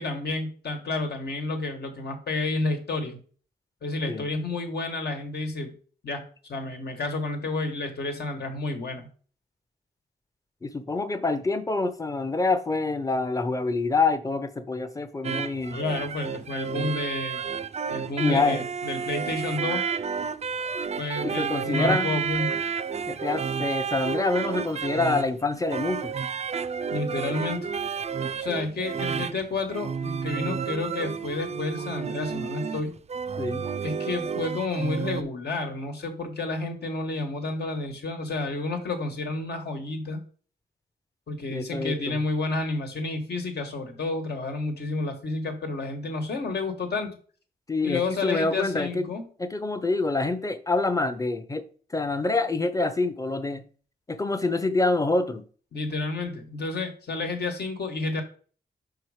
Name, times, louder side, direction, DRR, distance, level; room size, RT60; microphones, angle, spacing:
voice 1, 0.0-3.2 3.8-5.7 6.0-9.1 15.7-17.5 17.9-19.8 21.0-22.6 26.9-27.7 28.4-32.9 33.8-40.2 41.3-47.1 47.8-49.3 55.7-58.2, left 3 dB, 75° left, 1.4 m, -30 dB
voice 2, 10.6-15.8 18.2-18.6 21.2-22.2 23.1-26.1 33.4-33.6 41.5-42.2 47.7-49.1 49.4-51.7 51.9-53.6 54.1-55.4, left 3 dB, 20° left, 0.6 m, -26 dB
sound 1, 15.2-35.2, right 6 dB, 40° right, 0.4 m, -31 dB
5.3 x 4.5 x 4.8 m
wide cardioid pair, 115°, 17 cm